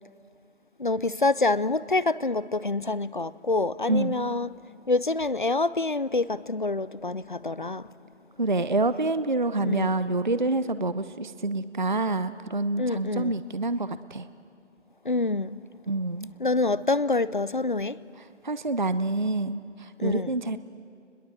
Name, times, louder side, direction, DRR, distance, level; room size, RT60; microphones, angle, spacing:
voice 1, 0.8-4.5 4.9-7.8 9.6-9.9 12.8-13.3 15.1-15.5 16.4-18.0 20.0-20.3, left 3 dB, 45° left, 18 dB, 0.5 m, -26 dB
voice 2, 3.9-4.2 8.4-14.3 15.9-16.3 18.2-20.6, right 2 dB, 40° right, 14 dB, 0.5 m, -27 dB
28.0 x 21.0 x 7.8 m, 2.5 s
figure-of-eight pair, 165°, 36 cm